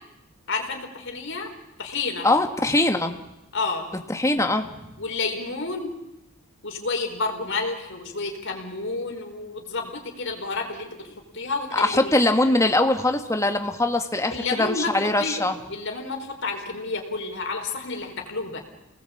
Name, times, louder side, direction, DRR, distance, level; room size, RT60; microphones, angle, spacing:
voice 1, 0.5-1.5 1.8-2.3 3.5-3.9 5.0-5.9 6.6-12.1 14.3-15.4 15.7-18.6, left 3 dB, 55° left, 3 dB, 4.8 m, -30 dB
voice 2, 2.2-3.2 4.1-4.9 11.7-15.6, left 2 dB, 15° left, 6 dB, 1.9 m, -22 dB
29.5 x 20.0 x 8.8 m, 0.92 s
head